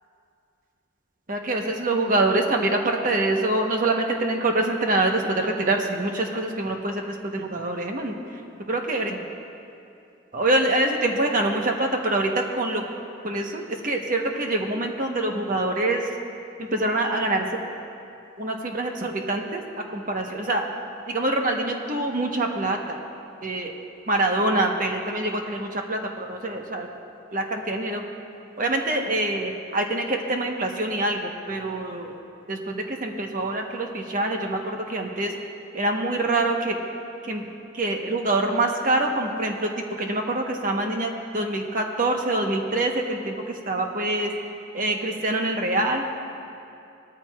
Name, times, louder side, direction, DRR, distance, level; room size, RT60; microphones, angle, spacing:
voice 1, 1.3-8.4 8.7-9.2 10.3-12.8 13.2-16.1 16.6-17.5 18.4-20.6 21.1-23.0 23.4-23.8 24.1-26.9 27.3-28.0 28.6-32.2 32.5-35.3 35.7-36.8 37.2-37.5 37.7-39.7 40.0-44.3 44.7-46.0, right 2 dB, 45° right, 2 dB, 1.1 m, -25 dB
18.0 x 13.5 x 2.4 m, 2.6 s
head